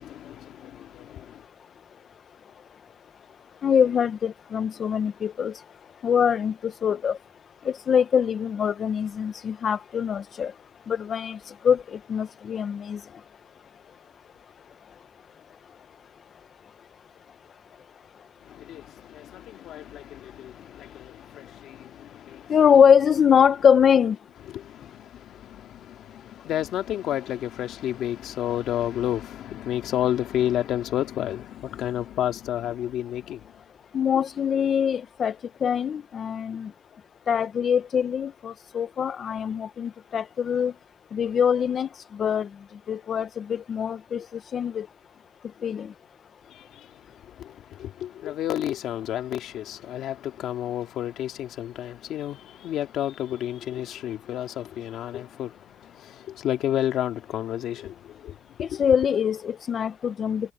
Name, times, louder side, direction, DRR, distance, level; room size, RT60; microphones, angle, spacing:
voice 1, 0.0-1.3 18.5-22.5 24.5-33.4 46.5-46.9 47.4-58.8, left 11 dB, 80° left, 2.2 m, -31 dB
voice 2, 3.6-5.5 6.0-6.5 6.8-7.2 7.9-10.5 10.9-11.4 11.6-11.8 12.1-13.0 22.5-24.2 33.9-35.3 35.6-36.7 37.3-40.7 41.1-41.9 42.2-42.5 42.9-44.2 44.5-44.9 45.6-45.9 58.8-60.5, left 7 dB, 55° left, 0.7 m, -23 dB
cardioid pair, 90°, 0 cm